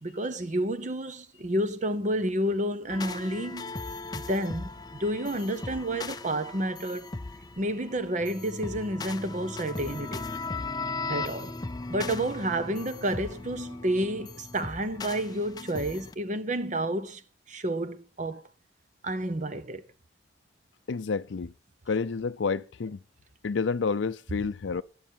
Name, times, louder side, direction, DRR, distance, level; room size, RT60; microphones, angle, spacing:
voice 1, 0.0-3.7 4.1-7.1 7.6-10.3 11.1-11.5 11.9-17.2 17.5-18.4 19.0-19.8, right 1 dB, 40° right, 0.9 m, -30 dB
sound 1, 2.9-16.1, left 3 dB, 20° left, 0.5 m, -38 dB
voice 2, 20.9-21.5 21.9-23.0 23.4-24.8, left 5 dB, 75° left, 0.5 m, -29 dB
12.5 x 10.5 x 4.6 m
head